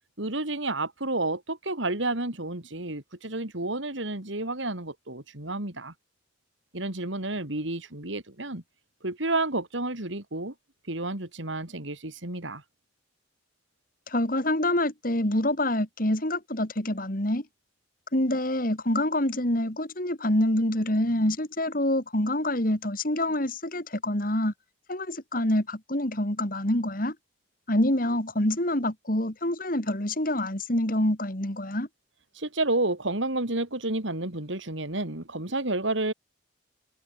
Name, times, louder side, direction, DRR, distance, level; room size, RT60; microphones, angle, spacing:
voice 1, 0.2-5.9 6.7-8.6 9.0-10.5 10.9-12.6 32.4-36.1, right 2 dB, 70° right, 3.5 m, -30 dB
voice 2, 14.1-17.4 18.1-24.5 24.9-27.1 27.7-31.9, left 1 dB, 45° left, 3.2 m, -26 dB
head